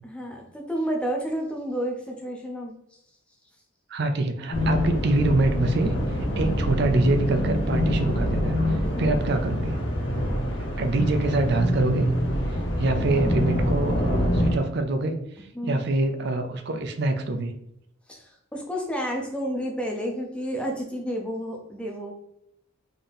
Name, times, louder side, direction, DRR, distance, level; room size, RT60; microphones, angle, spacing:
voice 1, 0.0-2.7 8.8-9.3 15.5-15.8 18.1-22.1, equal, 5° left, 0 dB, 0.5 m, -31 dB
voice 2, 3.9-5.9 6.4-9.8 10.8-12.1 12.8-17.5, right 2 dB, 50° right, 6 dB, 0.4 m, -25 dB
sound 1, 4.5-14.5, equal, 55° left, 1.0 m, -25 dB
3.9 x 2.7 x 3.4 m, 0.80 s
head